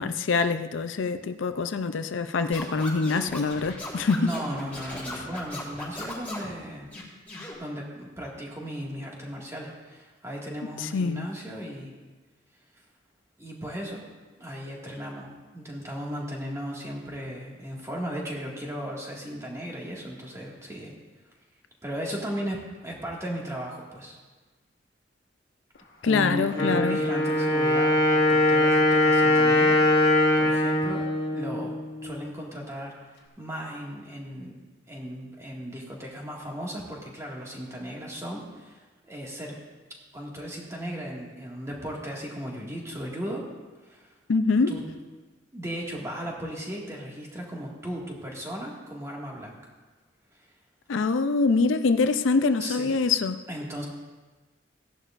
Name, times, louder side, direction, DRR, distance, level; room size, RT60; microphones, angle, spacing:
voice 1, 0.0-4.3 10.8-11.3 26.0-27.0 44.3-44.7 50.9-53.4, left 4 dB, 75° left, 10 dB, 0.5 m, -24 dB
Scratching (performance technique), 2.5-6.5 6.9-7.5, left 1 dB, 10° left, 3.4 m, -38 dB
voice 2, 4.2-6.9 7.6-11.9 13.4-14.0 14.4-15.3 15.5-20.9 21.8-24.2 26.0-31.0 31.3-31.7 32.0-34.5 34.9-39.6 40.1-43.4 43.8-44.1 44.7-44.8 45.5-49.7 50.3-50.5 52.6-53.0 53.5-53.9, equal, 15° right, -3 dB, 1.9 m, -36 dB
Wind instrument woodwind instrument, 26.5-32.3, left 1 dB, 55° left, 1.8 m, -22 dB
16.5 x 11.0 x 2.5 m, 1.3 s
head